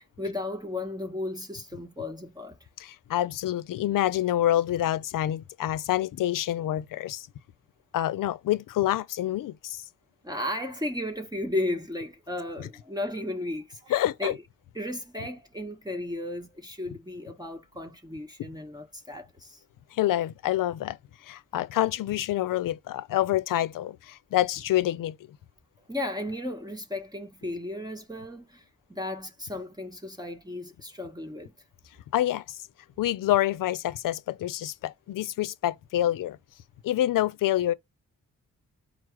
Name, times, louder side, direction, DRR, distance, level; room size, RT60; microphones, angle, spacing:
voice 1, 0.0-2.6 10.2-14.4 14.7-19.6 25.9-31.5, left 1 dB, 10° right, 1.1 m, -34 dB
voice 2, 2.8-7.3 7.9-9.8 12.6-12.7 13.9-14.3 19.9-21.0 21.2-25.2 32.1-32.6 33.0-36.4 36.8-37.7, left 13 dB, 75° left, 0.5 m, -27 dB
4.6 x 2.0 x 4.5 m
supercardioid pair, 45°, 33 cm